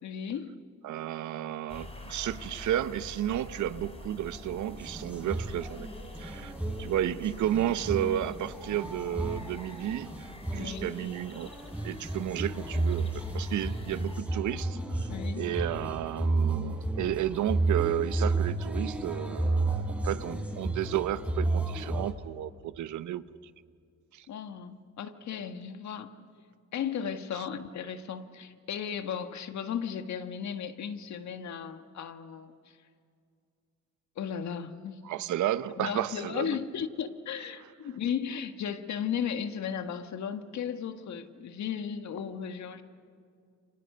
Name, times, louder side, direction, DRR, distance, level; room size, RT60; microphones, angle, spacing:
voice 1, 0.0-0.6 10.5-10.9 15.1-15.4 24.3-26.1 26.7-32.8 34.1-35.0 35.8-42.8, left 8 dB, 65° left, 1.7 m, -35 dB
voice 2, 0.8-5.9 6.2-6.5 6.8-11.5 11.8-23.2 24.1-24.3 27.3-27.5 35.0-36.6, right 12 dB, 75° right, 0.9 m, -32 dB
sound 1, 1.7-14.2, left 1 dB, 20° left, 5.1 m, -46 dB
sound 2, 4.3-22.1, right 2 dB, 5° right, 3.7 m, -32 dB
30.0 x 26.0 x 6.8 m
cardioid pair, 90°, 30 cm